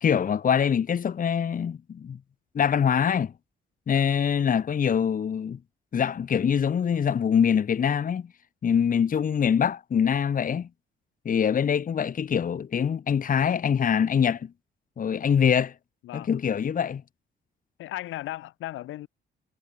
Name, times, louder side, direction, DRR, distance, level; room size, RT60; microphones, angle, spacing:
voice 1, 0.0-2.2 2.5-3.3 3.9-5.6 5.9-8.3 8.6-10.7 11.2-14.5 15.0-15.7 16.1-17.0, left 7 dB, 45° left, 1.2 m, -24 dB
voice 2, 17.8-19.1, left 15 dB, 85° left, 1.7 m, -36 dB
cardioid pair, 90°, 20 cm